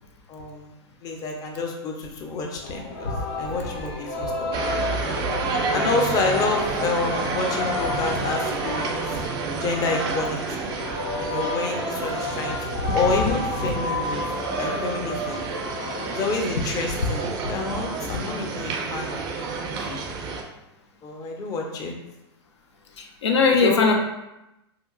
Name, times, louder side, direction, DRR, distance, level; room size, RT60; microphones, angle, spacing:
voice 1, 0.3-0.7 1.0-3.1 3.4-4.5 5.7-9.2 9.6-10.7 11.2-14.2 14.6-15.5 16.1-19.8 21.0-21.9 23.5-23.9, left 3 dB, 25° left, 1 dB, 0.5 m, -29 dB
Singing, 2.6-16.3, left 2 dB, 65° left, 0.8 m, -31 dB
sound 1, 4.5-20.4, right 4 dB, 30° right, 0.4 m, -30 dB
voice 2, 23.0-23.9, left 4 dB, 85° left, 3 dB, 0.4 m, -20 dB
2.8 x 2.3 x 2.4 m, 0.94 s
hypercardioid pair, 115°, 14 cm